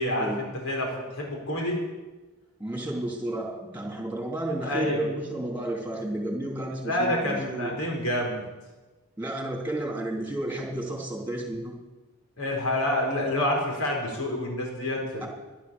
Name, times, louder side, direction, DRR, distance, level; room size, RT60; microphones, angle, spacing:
voice 1, 0.0-1.8 4.6-5.1 6.8-8.5 12.4-15.3, left 1 dB, 75° left, 0 dB, 4.6 m, -28 dB
voice 2, 2.6-7.8 9.2-11.7 15.2-15.3, right 1 dB, 10° right, 0 dB, 3.1 m, -32 dB
14.5 x 11.5 x 7.0 m, 1.2 s
head